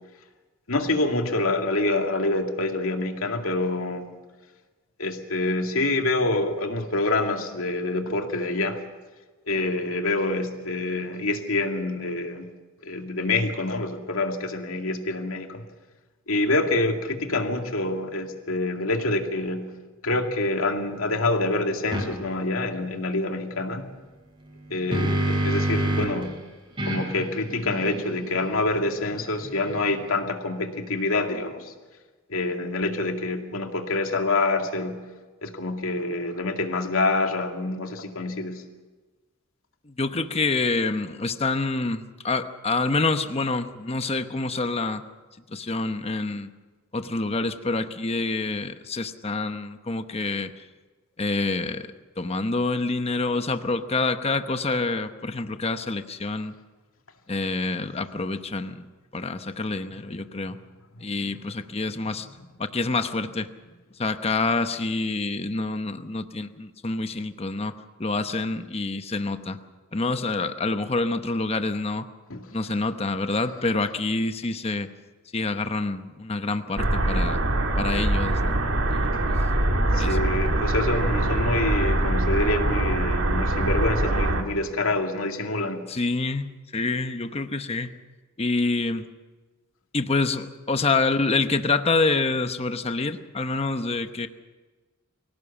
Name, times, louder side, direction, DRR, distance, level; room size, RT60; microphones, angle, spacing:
voice 1, 0.7-4.0 5.0-8.8 9.5-12.5 12.8-15.7 16.3-19.7 20.0-23.9 24.7-26.3 26.8-31.7 32.3-35.0 35.4-38.6 72.3-72.4 79.9-85.9, left 2 dB, 80° left, 4 dB, 2.3 m, -26 dB
sound 1, 21.9-22.1 24.5-26.3 26.8-30.1, right 1 dB, 25° right, 4.1 m, -28 dB
voice 2, 39.9-45.0 45.5-46.5 46.9-50.5 51.2-56.5 57.3-58.8 59.1-60.6 61.0-62.3 62.6-63.5 64.0-67.7 68.0-69.6 69.9-72.1 72.5-74.9 75.3-77.4 77.8-78.6 78.9-79.1 79.9-80.2 85.9-88.0 88.4-89.1 89.9-94.3, left 3 dB, 30° left, 9 dB, 0.9 m, -27 dB
sound 2, 76.8-84.4, right 1 dB, 75° right, 1.9 m, -23 dB
24.0 x 17.0 x 7.2 m, 1.3 s
head